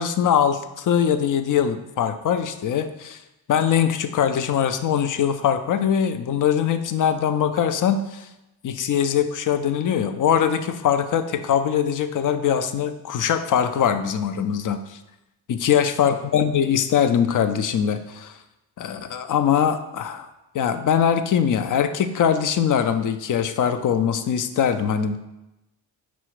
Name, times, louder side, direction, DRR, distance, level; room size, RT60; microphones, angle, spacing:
voice 1, 0.0-3.2 3.5-8.3 8.6-15.0 15.5-18.4 18.8-20.3 20.5-25.2, left 8 dB, 40° left, 9 dB, 0.4 m, -22 dB
5.4 x 2.1 x 4.5 m, 0.96 s
supercardioid pair, 50°, 49 cm